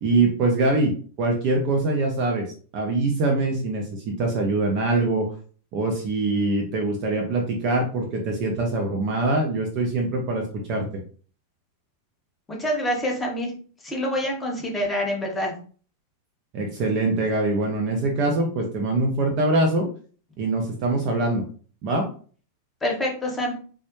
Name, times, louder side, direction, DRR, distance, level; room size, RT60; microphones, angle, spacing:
voice 1, 0.0-2.5 2.7-5.3 5.7-10.4 10.7-10.9 16.5-19.9 20.4-21.4 21.8-22.1, right 2 dB, 40° right, 1 dB, 0.6 m, -23 dB
voice 2, 12.5-13.5 13.8-15.5 22.8-23.5, left 1 dB, 15° left, 0 dB, 1.0 m, -26 dB
3.4 x 2.1 x 3.0 m, 0.42 s
figure-of-eight pair, 90°, 0 cm